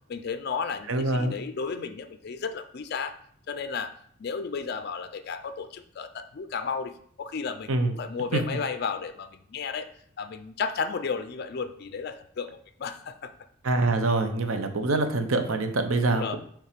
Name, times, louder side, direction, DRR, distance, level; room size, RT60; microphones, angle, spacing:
voice 1, 0.1-3.2 3.5-3.9 4.2-6.9 7.2-9.9 10.2-13.3 16.0-16.4, left 5 dB, 50° left, 9 dB, 0.4 m, -33 dB
voice 2, 0.9-1.3 7.7-7.9 8.3-8.4 13.6-16.4, right 2 dB, 75° right, 7 dB, 0.7 m, -25 dB
5.6 x 3.5 x 5.0 m, 0.62 s
head